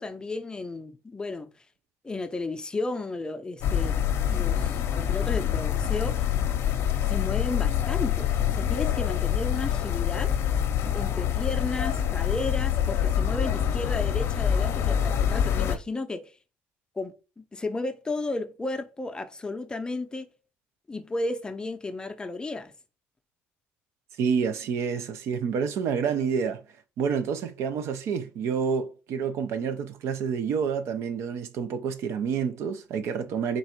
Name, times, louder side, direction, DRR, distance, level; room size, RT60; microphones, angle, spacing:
voice 1, 0.0-1.5 2.0-6.2 7.1-10.3 10.8-16.3 17.0-20.3 20.9-22.7, left 2 dB, 15° left, 0.5 m, -33 dB
sound 1, 3.6-15.8, left 9 dB, 65° left, 0.6 m, -26 dB
voice 2, 24.2-26.6 27.0-33.6, right 6 dB, 65° right, 0.6 m, -28 dB
4.0 x 2.5 x 4.3 m
cardioid pair, 95°, 5 cm